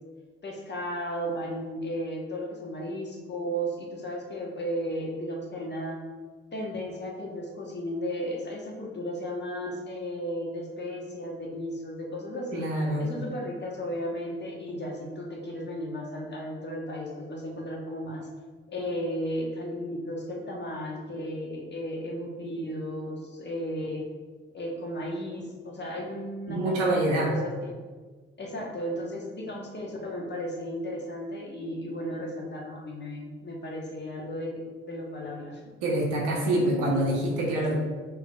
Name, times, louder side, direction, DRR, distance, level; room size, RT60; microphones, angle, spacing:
voice 1, 0.4-6.0 6.5-12.7 13.0-18.3 18.7-24.0 24.5-27.7 28.4-35.6 37.7-37.8, equal, 35° left, -2 dB, 1.3 m, -34 dB
voice 2, 12.5-13.0 26.5-27.3 35.8-37.7, right 1 dB, 70° right, -2 dB, 1.2 m, -26 dB
5.6 x 3.7 x 2.4 m, 1.4 s
hypercardioid pair, 45°, 31 cm